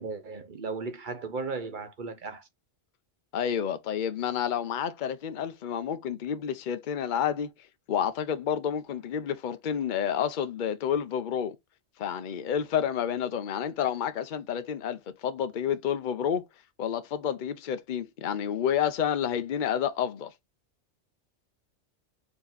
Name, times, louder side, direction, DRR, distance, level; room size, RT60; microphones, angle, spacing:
voice 1, 0.0-2.5, right 4 dB, 50° right, 0.9 m, -36 dB
voice 2, 3.3-7.5 7.9-11.6 12.0-16.4 16.8-20.3, left 8 dB, 50° left, 0.7 m, -29 dB
4.5 x 2.8 x 3.9 m
omnidirectional pair, 1.2 m